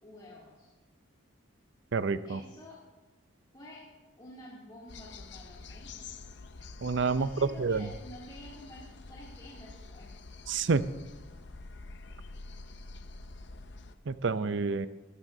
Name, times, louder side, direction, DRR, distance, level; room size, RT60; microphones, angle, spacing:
voice 1, 0.0-0.7 2.2-2.8 3.5-3.9 4.2-5.9 7.1-10.2, left 1 dB, 20° left, -8 dB, 2.5 m, -50 dB
voice 2, 1.9-2.4 6.8-7.9 10.5-10.8 14.1-14.9, right 4 dB, 60° right, 14 dB, 0.5 m, -28 dB
sound 1, 4.9-13.9, left 3 dB, 55° left, 0.6 m, -47 dB
20.5 x 13.5 x 2.7 m, 1.2 s
head